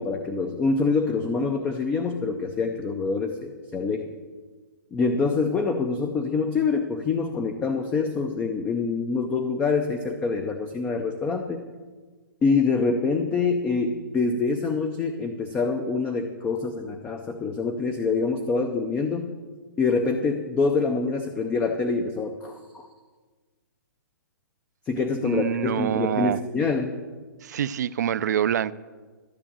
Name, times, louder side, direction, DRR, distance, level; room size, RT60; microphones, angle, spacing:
voice 1, 0.0-4.1 4.9-11.6 12.4-19.3 19.8-22.9 24.9-27.0, left 4 dB, 10° left, 6 dB, 0.5 m, -25 dB
voice 2, 25.2-26.4 27.4-28.7, right 9 dB, 55° right, 17 dB, 0.5 m, -26 dB
13.5 x 6.3 x 8.8 m, 1.4 s
hypercardioid pair, 165°, 11 cm